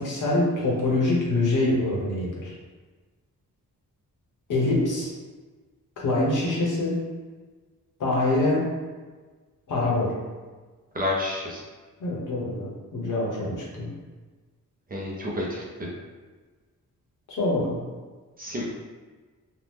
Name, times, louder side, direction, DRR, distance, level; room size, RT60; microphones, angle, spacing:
voice 1, 0.0-2.5 4.5-5.1 6.0-6.9 8.0-8.6 9.7-10.1 12.0-13.9 17.3-17.8, left 2 dB, 65° left, -4 dB, 0.9 m, -25 dB
voice 2, 11.0-11.6 14.9-15.9 18.4-18.7, left 1 dB, 25° right, -4 dB, 0.4 m, -29 dB
2.8 x 2.0 x 3.3 m, 1.4 s
wide cardioid pair, 155°, 33 cm